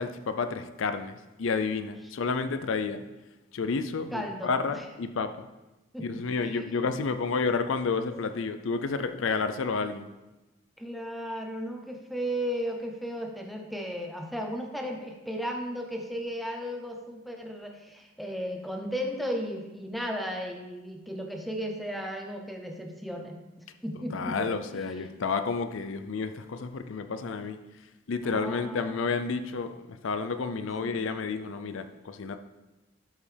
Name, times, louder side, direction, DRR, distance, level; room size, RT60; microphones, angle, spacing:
voice 1, 0.0-3.0 3.5-5.5 6.0-10.1 24.1-27.6 28.1-32.4, left 4 dB, 75° left, 9 dB, 0.5 m, -30 dB
voice 2, 4.1-4.9 5.9-6.9 10.8-23.4 23.8-25.0 28.2-28.9 30.8-31.0, equal, ahead, 2 dB, 0.7 m, -35 dB
12.0 x 5.3 x 3.3 m, 1.0 s
head